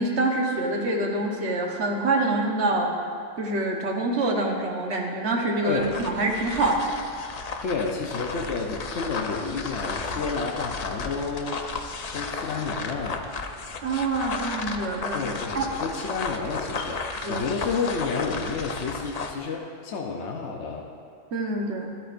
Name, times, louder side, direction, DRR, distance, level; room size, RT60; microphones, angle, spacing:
voice 1, 0.0-2.9 3.4-7.0 13.8-15.2 15.5-15.7 17.2-17.5 21.3-21.9, right 2 dB, 60° right, 0 dB, 1.4 m, -26 dB
voice 2, 5.6-5.9 7.6-11.6 12.1-13.3 15.1-20.9, left 4 dB, 65° left, 0 dB, 1.0 m, -30 dB
sound 1, 5.7-19.4, left 4 dB, 50° left, 0.5 m, -34 dB
13.0 x 12.5 x 2.5 m, 2.4 s
omnidirectional pair, 1.3 m